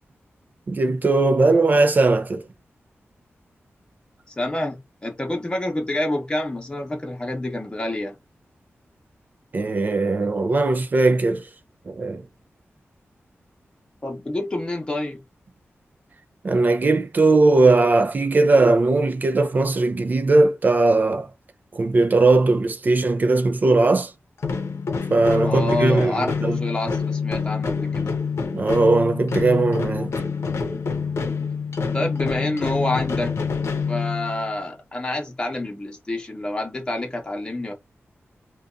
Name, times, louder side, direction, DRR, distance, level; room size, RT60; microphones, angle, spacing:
voice 1, 0.7-2.4 9.5-11.4 11.9-12.2 16.4-21.3 21.7-24.1 25.1-26.6 28.5-30.1, right 3 dB, 40° right, 0.4 m, -19 dB
voice 2, 4.3-8.1 14.0-15.2 25.4-28.1 31.9-33.4 33.9-37.7, left 1 dB, 20° left, 0.8 m, -28 dB
big drum sound, 24.4-34.6, left 5 dB, 75° left, 0.7 m, -26 dB
2.6 x 2.3 x 2.3 m
wide cardioid pair, 170°, 5 cm